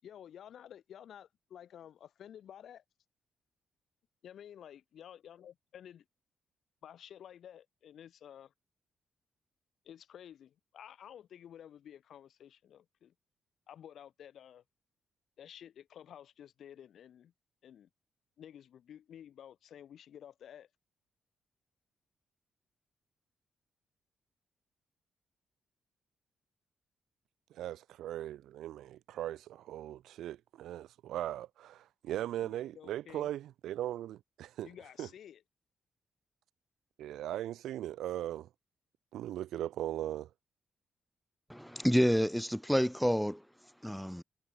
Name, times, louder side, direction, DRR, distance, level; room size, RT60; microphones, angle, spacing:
voice 1, 0.0-2.8 4.2-6.0 6.8-8.5 9.8-13.1 13.7-14.6 15.4-17.3 17.6-17.9 18.4-20.7 32.4-33.3 34.6-35.4, left 9 dB, 75° left, 7.6 m, -52 dB
voice 2, 27.5-34.7 35.0-35.1 37.0-38.5 39.1-40.3, right 12 dB, 90° right, 2.3 m, -39 dB
voice 3, 41.5-43.4 43.8-44.2, equal, ahead, 1.0 m, -29 dB
cardioid pair, 90°, 0 cm